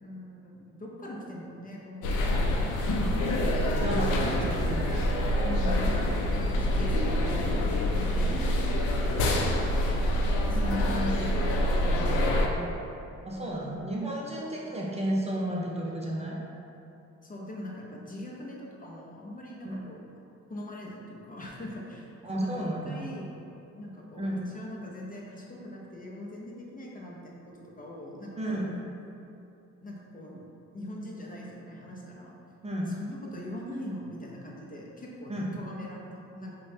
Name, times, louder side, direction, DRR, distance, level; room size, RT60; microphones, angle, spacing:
voice 1, 0.0-3.3 3.7-4.4 5.4-6.1 6.4-7.2 7.5-8.8 9.1-9.8 10.4-12.4 17.2-20.1 20.5-22.1 22.3-23.3 23.7-28.7 29.8-30.4 30.7-32.3 32.9-36.5, left 1 dB, 30° left, -3 dB, 0.5 m, -42 dB
sound 1, 2.0-12.5, left 1 dB, 80° left, 0.5 m, -26 dB
voice 2, 3.8-5.2 10.5-11.3 13.2-16.4 19.6-19.8 22.2-23.1 24.2-24.5 28.4-28.7 32.6-32.9 35.3-35.5, right 1 dB, 20° right, -4 dB, 0.5 m, -32 dB
4.8 x 2.2 x 2.7 m, 2.8 s
cardioid pair, 90°, 30 cm